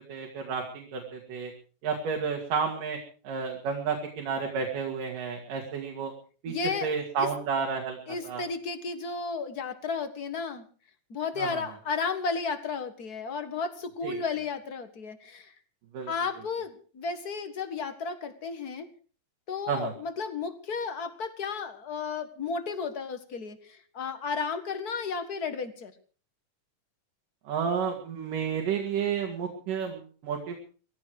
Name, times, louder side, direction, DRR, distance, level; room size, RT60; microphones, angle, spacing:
voice 1, 0.1-1.5 1.8-3.0 3.2-6.1 6.4-6.5 6.8-8.0 8.2-8.4 11.4-11.6 14.0-14.2 15.9-16.1 19.7-19.9 27.5-30.6, right 6 dB, 90° right, 2 dB, 4.0 m, -31 dB
voice 2, 6.5-6.9 7.2-7.3 8.1-10.6 11.1-15.5 16.1-18.9 19.5-25.9, left 5 dB, 40° left, 9 dB, 1.4 m, -33 dB
18.5 x 16.0 x 4.7 m, 0.40 s
omnidirectional pair, 3.6 m